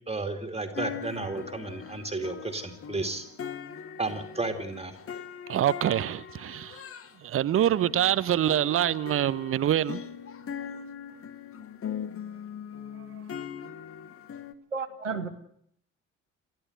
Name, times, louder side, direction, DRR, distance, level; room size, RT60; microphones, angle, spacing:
voice 1, 0.1-3.2 4.0-5.0, right 2 dB, 15° right, 2.5 m, -33 dB
sound 1, 0.7-7.2 7.5-14.5, left 8 dB, 40° left, 1.4 m, -40 dB
voice 2, 5.5-6.8 7.2-10.0 13.0-13.2, right 11 dB, 35° right, 0.8 m, -25 dB
voice 3, 14.7-15.3, right 5 dB, 85° right, 1.2 m, -32 dB
29.0 x 13.5 x 8.1 m
figure-of-eight pair, 45°, 36 cm